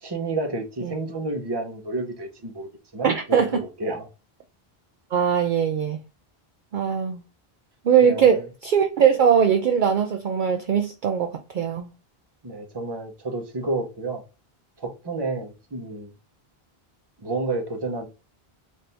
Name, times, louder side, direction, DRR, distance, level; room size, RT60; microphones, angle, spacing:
voice 1, 0.0-4.1 8.0-8.4 12.4-14.2 14.8-16.1 17.2-18.1, right 2 dB, 25° right, 0.8 m, -30 dB
voice 2, 3.0-3.5 5.1-6.0 6.7-7.2 7.8-11.9, right 7 dB, 60° right, 0.6 m, -21 dB
4.3 x 2.6 x 3.3 m
omnidirectional pair, 1.0 m